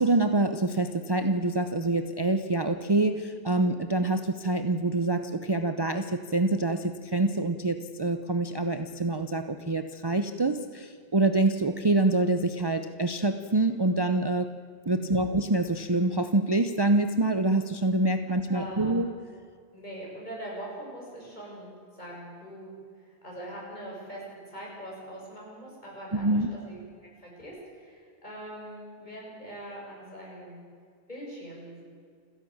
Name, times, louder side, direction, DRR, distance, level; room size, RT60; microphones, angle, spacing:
voice 1, 0.0-14.5 14.9-19.1 26.1-26.5, right 2 dB, 25° right, 8 dB, 0.7 m, -26 dB
voice 2, 14.9-15.3 18.5-18.9 19.7-26.8 27.2-30.6 31.1-31.8, right 1 dB, 40° left, -4 dB, 7.7 m, -42 dB
28.5 x 11.0 x 8.7 m, 2.1 s
omnidirectional pair, 1.1 m